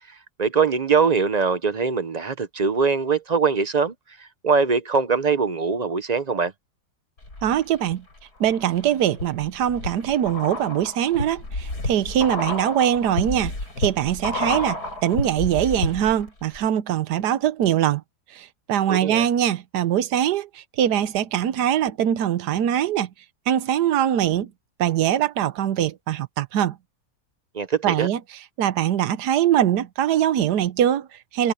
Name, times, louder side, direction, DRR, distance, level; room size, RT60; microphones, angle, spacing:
voice 1, 0.4-3.9 4.2-6.5 18.9-19.3 27.5-28.1, right 5 dB, 45° right, 0.5 m, -22 dB
sound 1, 7.2-8.0 8.4-16.3 16.5-16.6, left 2 dB, 65° left, 6.8 m, -30 dB
voice 2, 7.4-8.0 8.4-18.0 18.3-23.1 23.5-24.5 24.8-26.8 27.8-28.2 28.6-31.5, right 10 dB, 75° right, 1.4 m, -22 dB
omnidirectional pair, 1.8 m